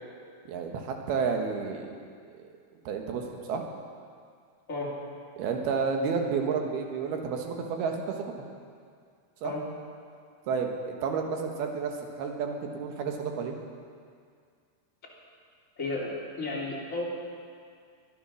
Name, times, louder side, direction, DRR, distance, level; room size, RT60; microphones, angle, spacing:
voice 1, 0.5-1.9 2.4-2.5 2.9-3.6 5.4-8.3 9.4-9.5 10.5-13.6, right 5 dB, 85° right, 3 dB, 3.4 m, -31 dB
voice 2, 15.8-16.1 16.4-17.0, left 2 dB, 20° left, -5 dB, 3.1 m, -32 dB
23.0 x 10.0 x 6.3 m, 2.2 s
omnidirectional pair, 4.4 m